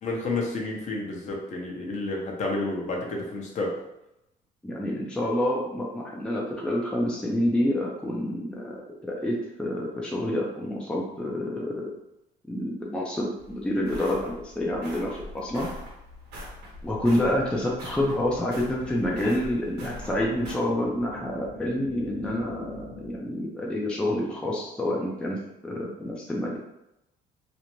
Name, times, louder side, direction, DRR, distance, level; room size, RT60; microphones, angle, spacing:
voice 1, 0.0-3.8, left 2 dB, 45° left, -1 dB, 0.7 m, -30 dB
voice 2, 4.6-11.9 12.5-15.7 16.8-25.4 25.6-26.6, left 1 dB, 5° left, -3 dB, 0.4 m, -28 dB
sound 1, 13.4-20.5, left 1 dB, 90° right, 0.7 m, -43 dB
sound 2, 18.4-23.4, left 3 dB, 90° left, 0.6 m, -43 dB
2.5 x 2.1 x 2.9 m, 0.88 s
cardioid pair, 110°, 17 cm